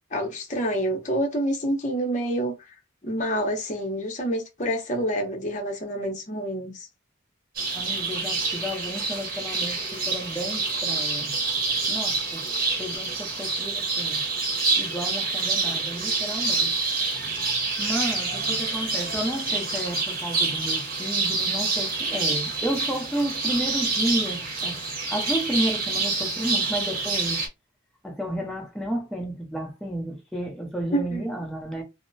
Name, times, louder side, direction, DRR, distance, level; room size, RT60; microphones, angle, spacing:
voice 1, 0.1-2.5 3.0-6.9 30.9-31.3, right 1 dB, 40° left, 0.8 m, -27 dB
sound 1, 7.6-27.5, right 3 dB, 45° right, 0.9 m, -27 dB
voice 2, 7.7-11.3 11.9-12.5 12.8-14.2 14.8-17.0 17.8-24.8 25.1-27.4 28.0-31.8, equal, ahead, 0.7 m, -32 dB
2.8 x 2.0 x 2.6 m
head